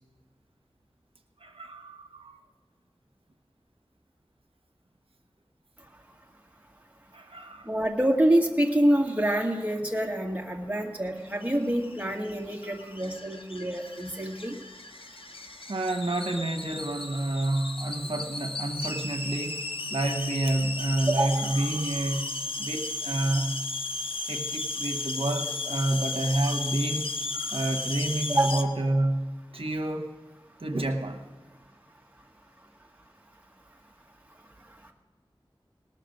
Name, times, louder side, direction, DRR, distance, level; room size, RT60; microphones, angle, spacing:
voice 1, 1.4-2.4 7.1-7.7 12.6-12.9 15.7-23.6 24.3-30.1 30.6-31.2, right 1 dB, 90° right, 3 dB, 1.1 m, -29 dB
voice 2, 7.7-14.5 21.1-21.4 28.3-28.6, right 1 dB, 15° right, 0 dB, 1.9 m, -26 dB
sound 1, 11.3-28.6, left 3 dB, 75° left, 0.8 m, -35 dB
19.0 x 6.8 x 6.5 m, 1.4 s
wide cardioid pair, 55°, 9 cm